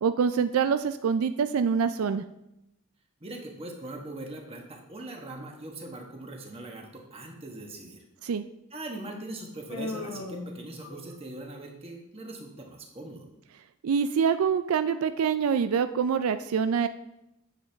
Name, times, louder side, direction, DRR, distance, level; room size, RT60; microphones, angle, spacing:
voice 1, 0.0-2.2 8.2-8.4 13.8-16.9, right 6 dB, 85° right, 11 dB, 0.4 m, -25 dB
voice 2, 3.2-8.0 8.7-13.3, right 2 dB, 25° right, 1 dB, 1.3 m, -41 dB
Human voice, 9.7-11.4, left 2 dB, 75° left, 0.9 m, -38 dB
9.3 x 7.5 x 3.5 m, 0.87 s
head